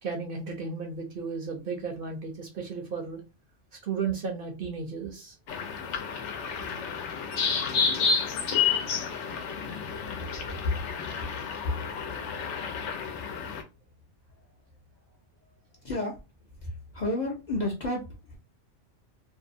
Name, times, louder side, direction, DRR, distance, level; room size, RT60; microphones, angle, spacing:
voice 1, 0.0-3.2 3.8-5.3, right 5 dB, 60° right, 3 dB, 0.7 m, -34 dB
sound 1, 5.5-13.6, left 5 dB, 75° left, 0.9 m, -30 dB
voice 2, 15.8-16.2 16.6-18.4, left 2 dB, 50° left, -1 dB, 0.6 m, -31 dB
2.7 x 2.1 x 2.5 m, 0.26 s
omnidirectional pair, 1.2 m